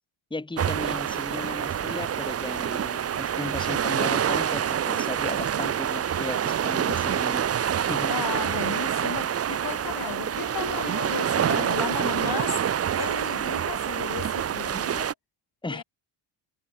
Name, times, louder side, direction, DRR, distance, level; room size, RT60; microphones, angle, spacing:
voice 1, 0.3-7.5 7.9-8.2 15.6-15.8, left 2 dB, 10° left, 2.1 m, -35 dB
sound 1, 0.6-15.1, right 9 dB, 30° right, 0.6 m, -27 dB
voice 2, 8.1-12.6 13.0-15.1 15.7-15.8, left 9 dB, 45° left, 2.7 m, -35 dB
cardioid pair, 125°, 50 cm